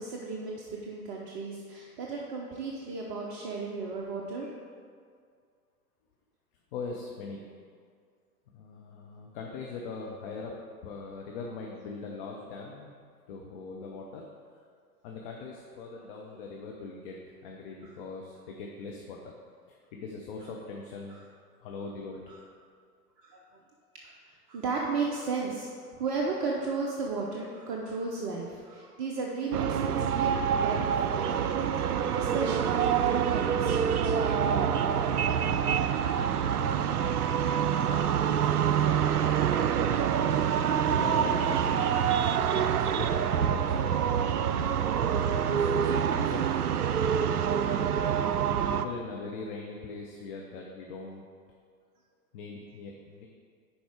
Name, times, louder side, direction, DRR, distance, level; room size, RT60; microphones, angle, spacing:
voice 1, 0.0-4.5 17.8-17.9 21.1-21.2 22.3-22.4 23.2-23.4 24.5-25.7 25.9-34.8, right 4 dB, 20° right, -2 dB, 0.5 m, -35 dB
voice 2, 6.7-7.4 8.5-10.5 10.8-12.9 13.3-14.3 15.0-17.2 17.4-19.3 19.7-21.2 21.6-22.4 40.7-44.0 45.3-47.0 47.4-48.2 48.7-51.2 52.3-53.3, left 4 dB, 35° left, 0 dB, 0.8 m, -41 dB
sound 1, 29.5-48.9, right 8 dB, 70° right, 0.5 m, -26 dB
10.0 x 4.4 x 4.8 m, 2.1 s
figure-of-eight pair, 100°, 47 cm